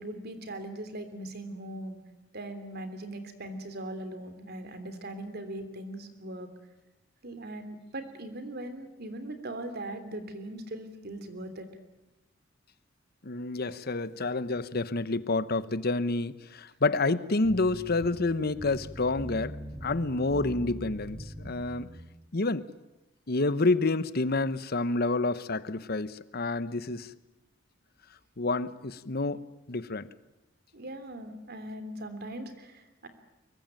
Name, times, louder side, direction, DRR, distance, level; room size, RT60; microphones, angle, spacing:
voice 1, 0.0-2.0 2.3-6.5 7.2-11.7 30.7-33.1, right 1 dB, 55° right, 3.3 m, -40 dB
voice 2, 13.2-19.6 19.8-21.9 22.3-22.7 23.3-27.1 28.4-29.4 29.7-30.1, left 3 dB, 55° left, 1.1 m, -28 dB
sound 1, 17.4-22.0, equal, 25° right, 3.0 m, -42 dB
25.0 x 22.5 x 9.1 m
head